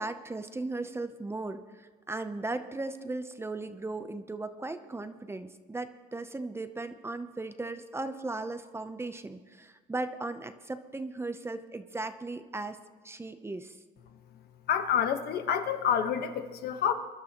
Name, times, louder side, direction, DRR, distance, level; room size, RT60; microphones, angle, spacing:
voice 1, 0.0-12.8 13.0-13.7, right 2 dB, 15° right, 10 dB, 0.7 m, -37 dB
voice 2, 14.7-16.9, left 8 dB, 65° left, 7 dB, 1.2 m, -28 dB
24.0 x 12.0 x 3.0 m, 1.4 s
cardioid pair, 110°, 17 cm